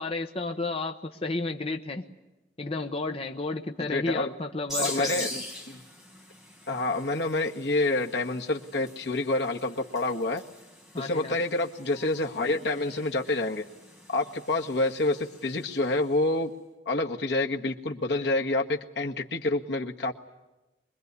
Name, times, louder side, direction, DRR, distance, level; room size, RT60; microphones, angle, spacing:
voice 1, 0.0-2.0 2.6-5.3 10.9-11.4, left 3 dB, 35° left, 5 dB, 1.1 m, -32 dB
voice 2, 3.8-4.3 4.8-5.8 6.7-10.4 11.0-13.6 14.1-16.5 16.8-20.1, left 2 dB, 70° left, 3 dB, 1.6 m, -28 dB
sound 1, 4.7-16.0, left 1 dB, ahead, 5.1 m, -42 dB
24.5 x 21.5 x 9.6 m, 1.0 s
head